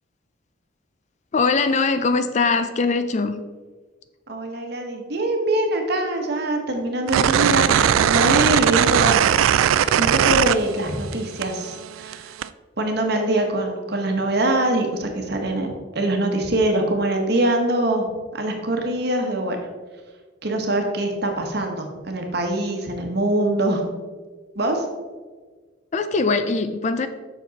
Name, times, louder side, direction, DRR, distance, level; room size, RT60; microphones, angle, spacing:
voice 1, 1.3-3.4 25.9-27.1, left 4 dB, 35° left, 10 dB, 0.4 m, -21 dB
voice 2, 4.3-12.4 12.8-18.1 18.3-19.6 20.4-23.9 24.5-24.8, right 1 dB, 55° right, 3 dB, 1.2 m, -23 dB
sound 1, 7.1-11.1 11.4-12.5, right 9 dB, 85° right, 0.3 m, -18 dB
7.2 x 6.1 x 4.1 m, 1.4 s
head